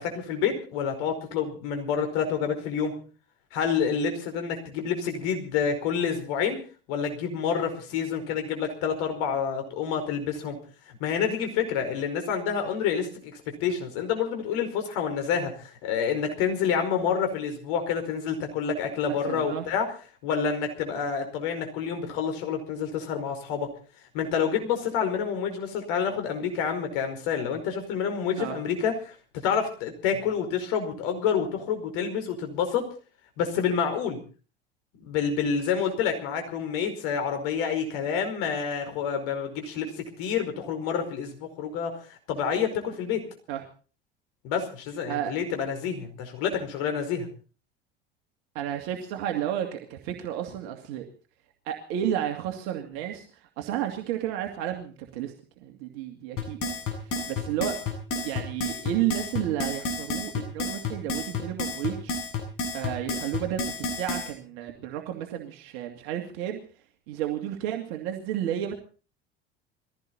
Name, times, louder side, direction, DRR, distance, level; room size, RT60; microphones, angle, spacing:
voice 1, 0.0-2.9 3.5-6.6 6.9-10.6 11.0-19.8 20.2-23.7 24.1-29.1 29.4-32.8 33.4-34.2 35.0-43.2 44.4-47.3, left 7 dB, 60° left, 6 dB, 4.9 m, -28 dB
voice 2, 19.1-19.7 28.4-28.6 43.5-43.6 45.1-45.3 48.5-51.1 51.6-53.3 53.6-55.3 55.6-56.7 57.0-57.7 58.2-62.1 62.7-66.6 67.1-68.7, right 11 dB, 60° right, 3 dB, 2.5 m, -32 dB
sound 1, 56.4-64.3, left 3 dB, 45° left, 7.4 m, -30 dB
21.5 x 16.0 x 4.2 m, 0.38 s
figure-of-eight pair, 70°, 30 cm